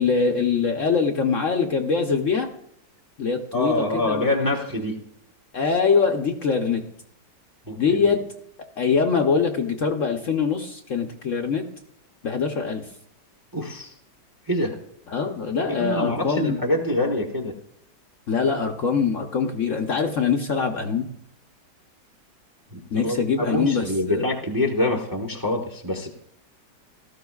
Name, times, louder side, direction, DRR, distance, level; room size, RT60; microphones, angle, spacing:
voice 1, 0.0-2.5 3.2-4.3 5.5-6.8 7.8-8.2 8.8-11.6 12.2-12.8 15.1-16.6 18.3-21.1 22.9-24.2, left 5 dB, 55° left, 3 dB, 1.0 m, -23 dB
voice 2, 3.5-5.0 7.7-8.0 13.5-13.9 14.5-14.8 15.7-17.6 22.7-26.1, left 1 dB, 15° right, 1 dB, 0.9 m, -25 dB
17.5 x 13.5 x 2.4 m, 0.72 s
omnidirectional pair, 1.9 m